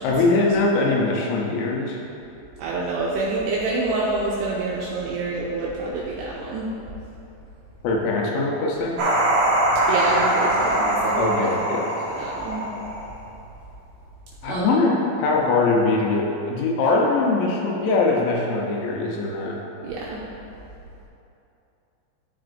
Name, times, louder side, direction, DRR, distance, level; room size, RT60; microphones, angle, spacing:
voice 1, 0.0-2.0 7.8-9.0 11.2-11.9 14.4-19.6, left 3 dB, 80° left, -2 dB, 3.0 m, -22 dB
voice 2, 2.6-6.7 9.9-11.3 12.2-12.7 14.5-14.7 19.8-20.2, right 3 dB, 85° right, -4 dB, 2.4 m, -27 dB
sound 1, 9.0-13.2, right 1 dB, 70° right, 2.1 m, -22 dB
13.5 x 4.9 x 2.6 m, 2.8 s
omnidirectional pair, 5.5 m